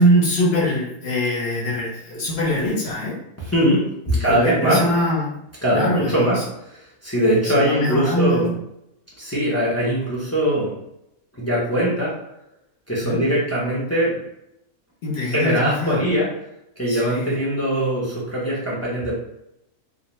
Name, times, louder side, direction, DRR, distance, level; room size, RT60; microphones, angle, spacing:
voice 1, 0.0-3.2 4.1-5.4 5.7-6.4 7.4-8.5 13.0-13.2 15.0-16.2 16.9-17.4, equal, 55° left, -4 dB, 0.8 m, -22 dB
voice 2, 3.4-4.9 5.6-8.5 9.2-10.8 11.3-12.2 12.9-14.2 15.2-16.3 16.8-19.1, equal, 20° left, -7 dB, 0.4 m, -21 dB
2.4 x 2.2 x 3.0 m, 0.81 s
omnidirectional pair, 1.5 m